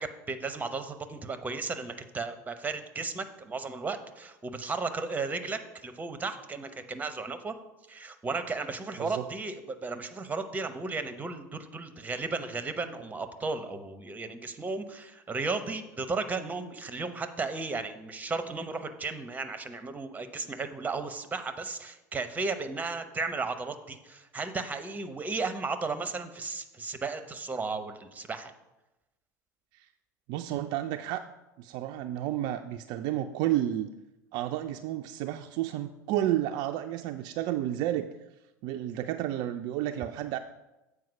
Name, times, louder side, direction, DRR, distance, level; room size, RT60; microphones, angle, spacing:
voice 1, 0.0-7.5 7.9-28.5, right 3 dB, 15° right, 10 dB, 0.8 m, -35 dB
voice 2, 9.0-9.3 29.7-29.9 30.3-31.2 31.6-33.9 34.3-38.1 38.6-40.4, right 13 dB, 50° right, 7 dB, 0.4 m, -31 dB
7.7 x 4.7 x 5.7 m, 0.99 s
figure-of-eight pair, 75°, 10 cm